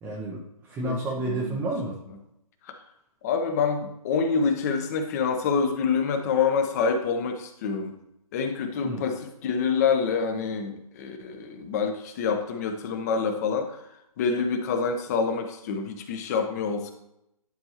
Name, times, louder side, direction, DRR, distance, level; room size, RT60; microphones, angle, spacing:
voice 1, 0.0-2.0 8.8-9.0, right 2 dB, 10° right, -3 dB, 0.6 m, -30 dB
voice 2, 1.3-1.6 2.6-2.8 3.2-7.9 8.3-13.9 14.2-16.9, left 5 dB, 25° left, 6 dB, 0.8 m, -26 dB
10.5 x 4.5 x 2.9 m, 0.83 s
hypercardioid pair, 150°, 19 cm